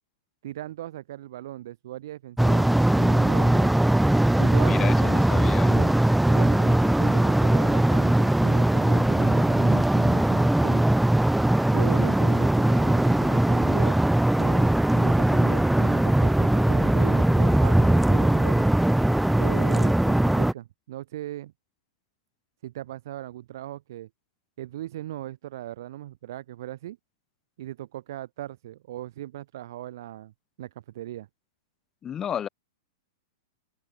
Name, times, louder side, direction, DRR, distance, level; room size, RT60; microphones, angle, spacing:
voice 1, 0.4-3.7 4.4-6.0 6.3-10.8 11.7-14.0 14.4-18.6 19.4-21.5 22.6-24.1 24.6-27.0 27.6-30.3 30.6-31.3, right 14 dB, 65° right, 3.3 m, -38 dB
sound 1, 2.4-20.5, right 1 dB, 5° right, 0.3 m, -20 dB
voice 2, 4.6-5.9 32.0-32.5, left 9 dB, 25° left, 1.7 m, -32 dB
open air
hypercardioid pair, 120°, 2 cm